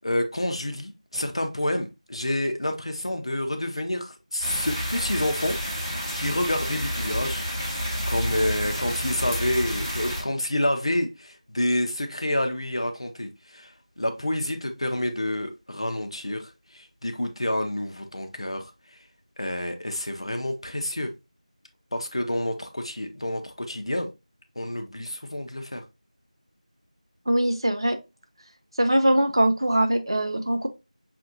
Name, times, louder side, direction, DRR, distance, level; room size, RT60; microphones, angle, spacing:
voice 1, 0.0-7.8 8.1-18.7 19.4-21.1 21.9-24.1 24.6-25.8, left 1 dB, 45° left, 0.7 m, -28 dB
sound 1, 4.4-10.2, equal, 15° right, 1.2 m, -29 dB
voice 2, 27.3-28.0 28.8-30.7, right 1 dB, 40° right, 0.4 m, -22 dB
5.7 x 2.6 x 2.7 m
figure-of-eight pair, 180°, 4 cm